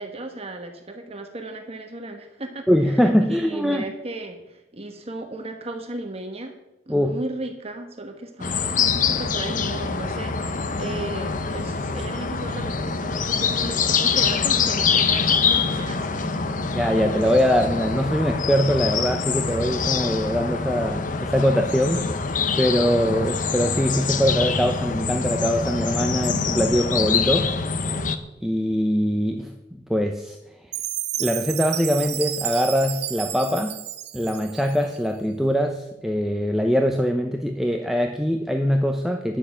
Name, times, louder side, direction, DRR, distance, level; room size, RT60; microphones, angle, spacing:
voice 1, 0.0-6.5 6.9-16.3, right 2 dB, 35° right, 5 dB, 1.2 m, -35 dB
voice 2, 2.7-3.8 6.9-7.2 16.7-27.5 28.4-30.4 31.2-33.8 34.1-39.4, equal, ahead, 3 dB, 0.7 m, -22 dB
sound 1, 8.4-28.2, left 5 dB, 45° left, 0.8 m, -25 dB
Chime, 30.7-35.0, right 13 dB, 60° right, 0.7 m, -31 dB
10.0 x 6.8 x 8.6 m, 0.97 s
head